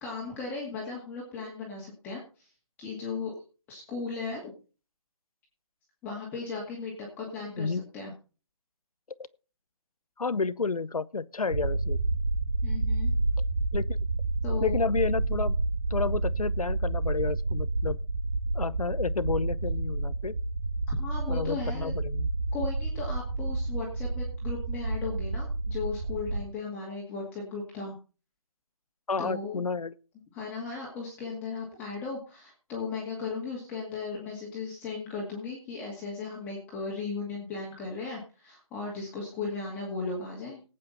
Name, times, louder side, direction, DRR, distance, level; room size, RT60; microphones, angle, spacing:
voice 1, 0.0-2.5 2.8-3.3 3.7-4.5 6.0-8.1 12.6-13.2 14.4-14.8 20.9-21.9 22.5-27.9 29.2-29.6 30.3-40.6, left 4 dB, 10° left, 2.2 m, -36 dB
voice 2, 7.6-7.9 10.2-12.0 13.7-14.0 14.6-15.6 15.9-18.0 18.5-20.4 21.3-22.3 29.1-29.9, left 4 dB, 85° left, 0.8 m, -30 dB
sound 1, 11.5-26.4, right 2 dB, 65° right, 2.0 m, -29 dB
18.5 x 8.6 x 4.2 m
figure-of-eight pair, 160°, 18 cm